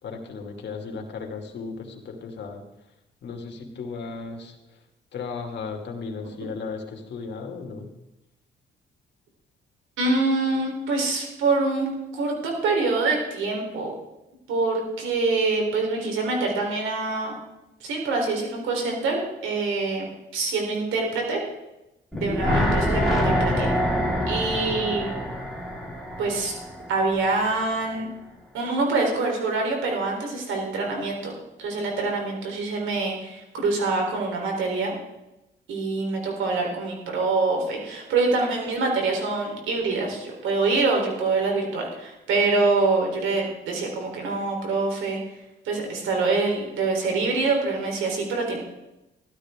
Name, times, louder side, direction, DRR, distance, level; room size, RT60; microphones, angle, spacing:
voice 1, 0.0-2.6 3.2-4.5 5.1-7.9, left 4 dB, 60° left, 2 dB, 2.7 m, -35 dB
voice 2, 10.0-11.9 12.1-13.9 14.5-17.4 17.8-20.0 20.3-21.4 22.1-23.7 24.3-25.1 26.2-26.5 26.9-28.1 28.5-31.3 31.6-34.9 35.7-45.2 45.6-48.6, right 3 dB, 85° right, 1 dB, 4.0 m, -25 dB
sound 1, 22.1-27.3 27.6-27.7, equal, ahead, 4.4 m, -25 dB
16.0 x 12.5 x 3.8 m, 0.96 s
cardioid pair, 90°, 20 cm